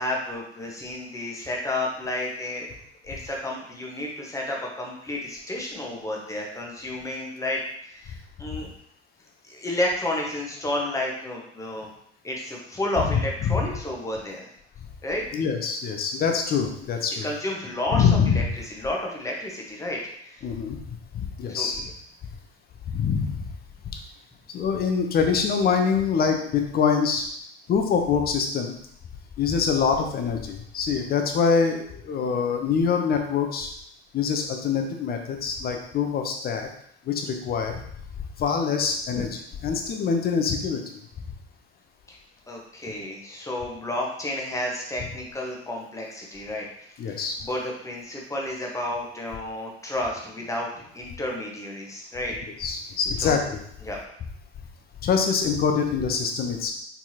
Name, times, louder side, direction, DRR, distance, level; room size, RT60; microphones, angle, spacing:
voice 1, 0.0-2.7 3.0-8.7 9.5-11.9 12.2-14.5 15.0-15.3 17.2-20.5 21.5-21.8 39.1-39.3 42.1-42.2 42.5-46.7 47.1-50.7 50.9-52.3 53.2-53.4 53.8-54.0, left 1 dB, 10° left, -1 dB, 1.2 m, -31 dB
voice 2, 15.3-17.2 17.9-18.4 20.4-20.8 21.1-21.8 22.9-23.5 23.8-24.0 24.5-27.3 27.7-28.7 29.4-33.7 34.1-36.7 37.0-37.8 38.4-39.3 39.6-41.0 47.0-47.4 52.6-53.6 55.0-56.7, left 6 dB, 30° left, 4 dB, 0.8 m, -24 dB
4.4 x 4.2 x 2.8 m, 0.69 s
figure-of-eight pair, 70°, 33 cm